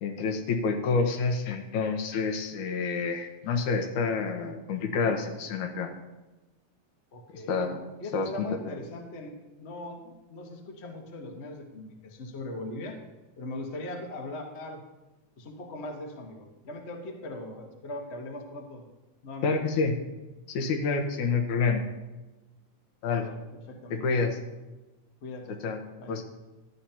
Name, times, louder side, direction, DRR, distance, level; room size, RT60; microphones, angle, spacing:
voice 1, 0.0-5.9 7.3-7.8 8.1-8.8 19.4-19.9 20.5-21.8 23.0-23.2 23.9-24.4 25.6-25.8 26.1-26.2, left 4 dB, 90° left, 3 dB, 2.6 m, -28 dB
voice 2, 7.1-7.6 8.0-13.0 13.4-14.8 15.4-18.8 19.2-19.7 23.1-24.0 25.2-25.6 26.0-26.2, left 2 dB, 50° left, 2 dB, 0.7 m, -40 dB
12.5 x 10.5 x 2.9 m, 1.1 s
omnidirectional pair, 3.3 m